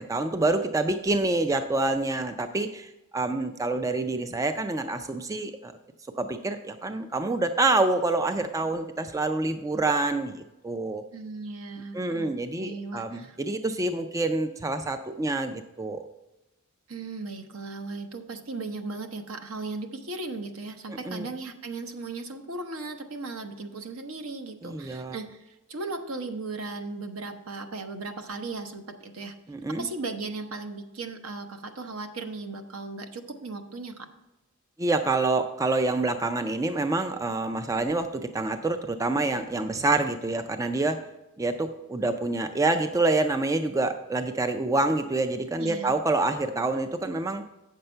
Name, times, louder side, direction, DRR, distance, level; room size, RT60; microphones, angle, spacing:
voice 1, 0.0-5.7 6.2-11.0 11.9-16.0 21.1-21.3 24.6-25.2 29.5-29.9 34.8-41.0 41.4-47.4, right 2 dB, 15° right, 8 dB, 0.3 m, -27 dB
voice 2, 11.1-12.3 12.6-13.4 16.9-29.4 29.8-34.1 45.6-45.9, right 3 dB, 70° right, 6 dB, 0.9 m, -37 dB
8.6 x 6.7 x 4.4 m, 1.0 s
head